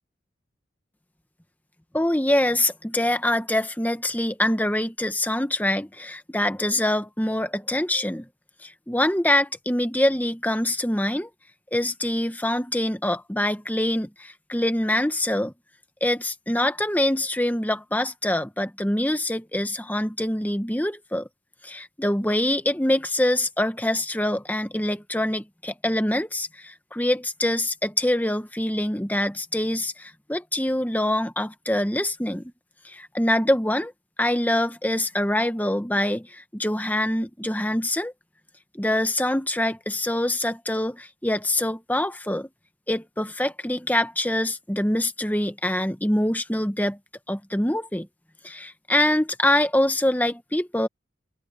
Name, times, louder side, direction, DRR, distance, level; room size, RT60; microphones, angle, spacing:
voice 1, 1.9-8.3 8.6-11.3 11.7-15.5 16.0-21.3 21.6-32.5 32.8-33.9 34.2-38.1 38.7-42.5 42.9-47.0 47.3-48.1 48.4-50.9, left 1 dB, 10° left, 1.2 m, -25 dB
head